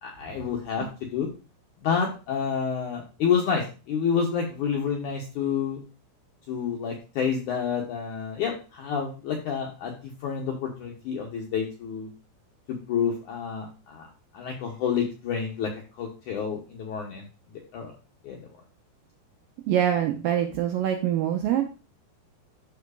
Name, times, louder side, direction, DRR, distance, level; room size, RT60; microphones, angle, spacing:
voice 1, 0.0-1.3 1.8-5.8 6.5-12.1 12.7-14.1 14.3-15.7 16.0-17.2 17.7-17.9 18.2-18.5, left 7 dB, 75° left, 0 dB, 1.8 m, -29 dB
voice 2, 19.7-21.6, right 10 dB, 80° right, 3 dB, 2.1 m, -24 dB
13.5 x 4.8 x 2.4 m, 0.32 s
omnidirectional pair, 4.8 m